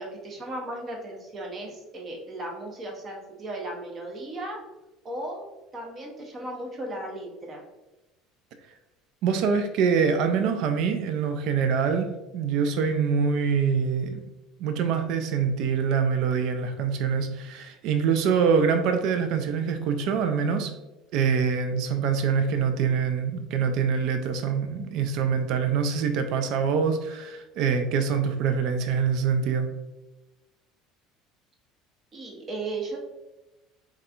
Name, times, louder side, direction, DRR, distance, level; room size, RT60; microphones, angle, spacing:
voice 1, 0.0-4.6 5.0-5.5 5.7-7.6 32.1-33.0, right 2 dB, 35° right, 0 dB, 0.7 m, -36 dB
voice 2, 9.2-12.1 12.3-14.2 14.6-20.7 21.1-29.7, right 6 dB, 55° right, 8 dB, 0.3 m, -25 dB
3.4 x 2.2 x 2.4 m, 1.0 s
figure-of-eight pair, 65°, 0 cm